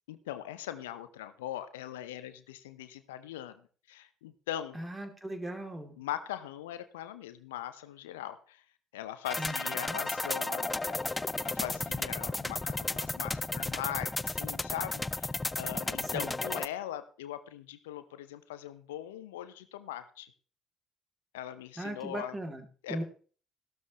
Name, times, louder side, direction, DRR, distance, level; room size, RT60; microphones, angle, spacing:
voice 1, 0.1-3.6 3.9-4.8 6.0-8.6 8.9-20.3 21.3-22.3 22.8-23.0, left 12 dB, 75° left, 12 dB, 0.7 m, -41 dB
voice 2, 4.7-5.9 9.4-10.0 16.0-16.5 21.8-23.0, right 1 dB, 20° right, 6 dB, 2.8 m, -39 dB
sound 1, 9.3-16.7, left 2 dB, 15° left, 0.5 m, -34 dB
15.0 x 12.5 x 3.1 m, 0.40 s
figure-of-eight pair, 50°, 0 cm